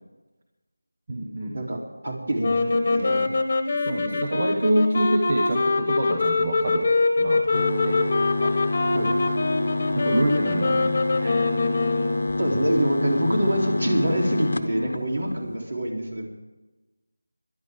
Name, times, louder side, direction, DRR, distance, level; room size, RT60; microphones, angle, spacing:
voice 1, 1.1-1.6 3.7-6.9 7.2-8.6 9.9-11.5, right 1 dB, 40° right, 1 dB, 1.4 m, -26 dB
voice 2, 2.0-3.3 8.9-9.1 12.4-16.3, right 1 dB, 55° right, 0 dB, 3.7 m, -25 dB
sound 1, 2.4-12.4, left 3 dB, 30° left, 1.3 m, -24 dB
sound 2, 7.5-15.6, left 2 dB, 60° left, 1.0 m, -27 dB
25.5 x 11.5 x 3.8 m, 1.1 s
figure-of-eight pair, 170°, 0 cm